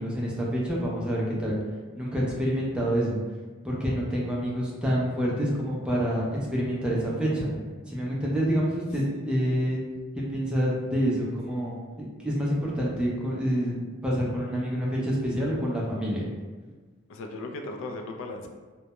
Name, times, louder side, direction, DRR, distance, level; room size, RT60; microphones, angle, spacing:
voice 1, 0.0-1.5 1.9-3.2 3.6-6.3 6.5-7.5 7.9-9.8 10.1-11.8 12.2-16.3, equal, 5° right, -5 dB, 0.4 m, -27 dB
voice 2, 9.4-9.8 17.1-18.5, left 2 dB, 65° left, 3 dB, 0.3 m, -37 dB
2.2 x 2.0 x 2.8 m, 1.4 s
head